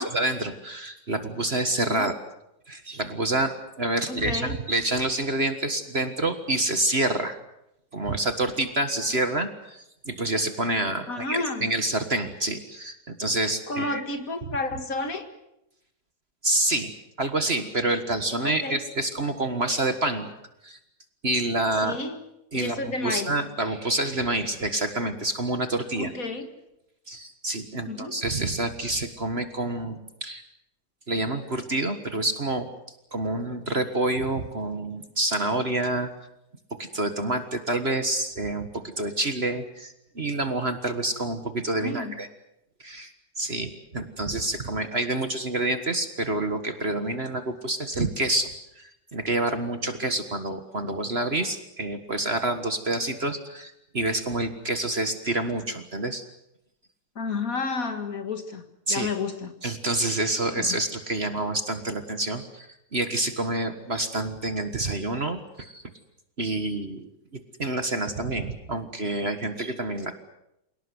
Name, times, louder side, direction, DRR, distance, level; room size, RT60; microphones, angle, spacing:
voice 1, 0.0-2.2 2.7-7.4 7.9-14.1 16.4-16.9 17.2-20.3 20.6-20.8 21.2-22.0 22.5-26.1 27.1-30.4 31.1-32.7 33.1-36.1 36.7-42.3 42.8-43.1 43.4-48.5 48.8-56.2 58.9-59.1 59.6-65.8 66.4-70.1, right 2 dB, 35° right, 8 dB, 1.7 m, -28 dB
voice 2, 4.1-4.6 11.1-11.7 13.7-15.3 18.4-18.8 21.8-22.3 22.5-23.3 25.9-26.5 27.9-28.2 41.8-42.2 57.2-59.5 60.6-60.8, left 3 dB, 50° left, 7 dB, 2.3 m, -31 dB
27.5 x 18.5 x 8.1 m, 0.85 s
omnidirectional pair, 2.0 m